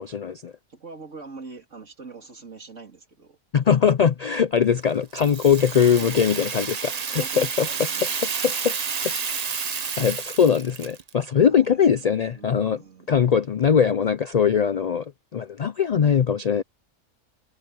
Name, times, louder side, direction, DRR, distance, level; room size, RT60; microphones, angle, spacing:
voice 1, 0.0-0.5 3.5-7.7 8.4-8.7 9.0-9.1 10.0-12.8 13.1-16.6, left 7 dB, 80° left, 0.3 m, -21 dB
voice 2, 0.7-3.4 5.9-8.3 11.5-13.1, right 4 dB, 65° right, 3.7 m, -43 dB
Rattle (instrument), 5.1-11.1, right 6 dB, 40° right, 0.7 m, -30 dB
omnidirectional pair, 1.4 m